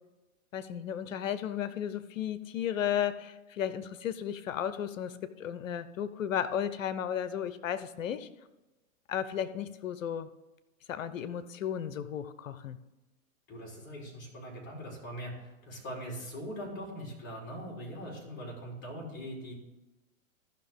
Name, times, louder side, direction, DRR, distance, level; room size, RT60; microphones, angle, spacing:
voice 1, 0.5-8.3 9.1-10.3 10.9-12.8, left 9 dB, 65° left, 13 dB, 0.9 m, -34 dB
voice 2, 13.5-19.5, equal, 25° left, -1 dB, 3.6 m, -41 dB
14.5 x 6.1 x 3.6 m, 1.1 s
hypercardioid pair, 125°, 42 cm